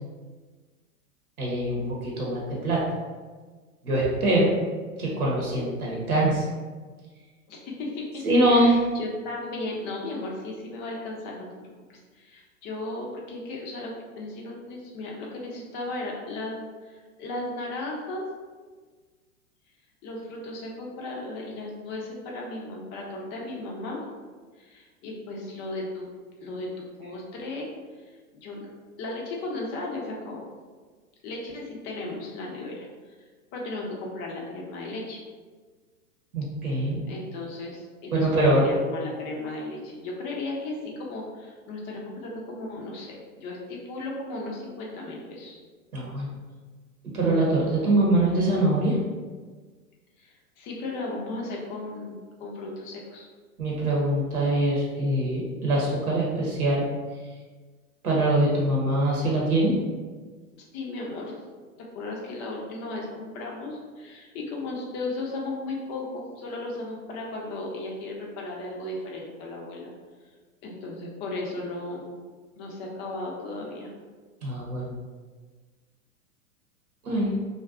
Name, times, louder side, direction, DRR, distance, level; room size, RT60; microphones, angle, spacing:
voice 1, 1.4-2.8 3.8-4.5 5.0-6.4 8.2-8.7 36.3-37.0 38.1-38.7 45.9-46.3 47.1-49.0 53.6-56.8 58.0-59.8 74.4-74.9 77.0-77.3, right 1 dB, 90° right, -4 dB, 0.9 m, -23 dB
voice 2, 7.5-8.2 8.5-11.6 11.9-16.6 16.8-18.2 20.0-24.0 24.6-26.1 26.4-27.7 28.3-28.7 29.0-30.5 31.2-32.9 33.5-35.2 37.1-45.6 50.2-53.3 60.7-61.4 61.8-69.9 70.6-72.1 72.6-73.9, left 2 dB, 25° left, -2 dB, 0.4 m, -35 dB
2.5 x 2.2 x 2.4 m, 1.4 s
hypercardioid pair, 105°, 42 cm